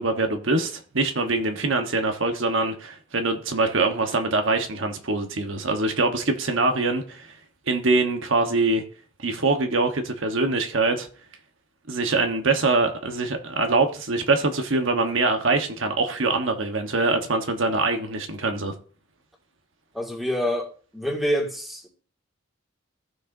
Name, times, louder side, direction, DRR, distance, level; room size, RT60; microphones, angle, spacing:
voice 1, 0.0-7.4 7.7-8.8 9.2-11.1 11.9-18.7, right 3 dB, 70° right, 1.2 m, -24 dB
voice 2, 19.9-20.7 20.9-21.9, equal, ahead, 2.1 m, -26 dB
15.5 x 6.4 x 2.7 m
head